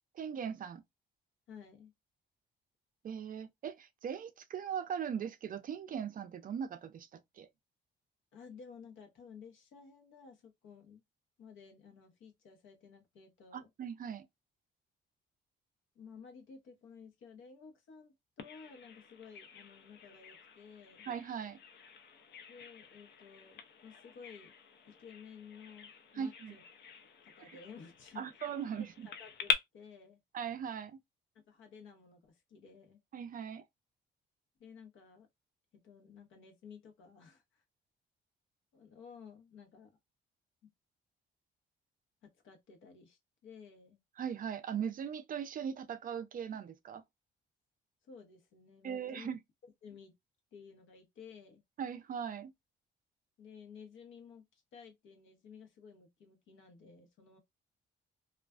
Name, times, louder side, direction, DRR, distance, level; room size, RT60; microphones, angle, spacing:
voice 1, 0.2-0.8 3.0-7.5 13.5-14.3 21.0-21.6 26.1-26.6 27.4-27.6 28.2-29.1 30.3-31.0 33.1-33.6 44.2-47.0 48.8-49.4 51.8-52.5, right 7 dB, 45° right, 0.4 m, -39 dB
voice 2, 1.5-1.9 8.3-11.0 11.4-13.7 15.9-21.1 22.5-24.5 24.9-26.6 27.2-28.4 28.8-30.2 31.5-33.0 34.6-35.3 35.8-37.6 38.7-40.0 42.2-44.0 48.1-49.3 49.6-50.1 50.5-51.6 53.4-57.4, left 6 dB, 75° left, 0.9 m, -54 dB
Bird vocalization bird call bird song, 18.4-29.5, left 6 dB, 60° left, 0.5 m, -43 dB
2.4 x 2.2 x 2.3 m
cardioid pair, 90°, 20 cm